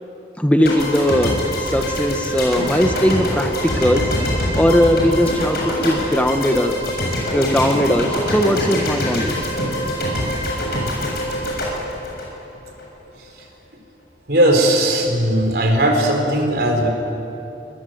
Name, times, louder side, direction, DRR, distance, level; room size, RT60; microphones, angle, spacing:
voice 1, 0.4-4.0 4.5-6.7 7.3-9.5, equal, 10° left, 5 dB, 1.1 m, -18 dB
sound 1, 0.6-12.8, equal, 60° left, 7.6 m, -24 dB
voice 2, 14.3-16.9, right 1 dB, 65° right, 3 dB, 4.2 m, -17 dB
26.5 x 22.5 x 7.9 m, 2.9 s
head